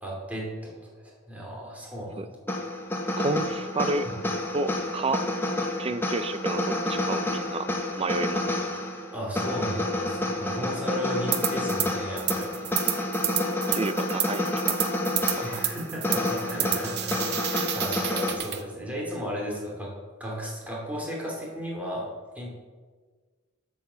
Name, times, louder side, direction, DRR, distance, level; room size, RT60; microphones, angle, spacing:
voice 1, 0.0-2.3 4.1-4.2 9.1-12.7 15.4-17.2 17.5-19.9 20.2-22.1 22.3-22.5, equal, 5° right, -3 dB, 2.8 m, -35 dB
sound 1, 2.5-18.3, left 1 dB, 10° left, 1.2 m, -29 dB
voice 2, 3.2-4.1 4.5-5.2 5.8-7.7 8.0-8.4 13.7-14.8 15.1-15.7, right 2 dB, 30° right, 12 dB, 0.5 m, -30 dB
sound 2, 11.3-11.9 12.2-18.6, right 11 dB, 55° right, 0.8 m, -30 dB
8.6 x 7.2 x 6.8 m, 1.5 s
head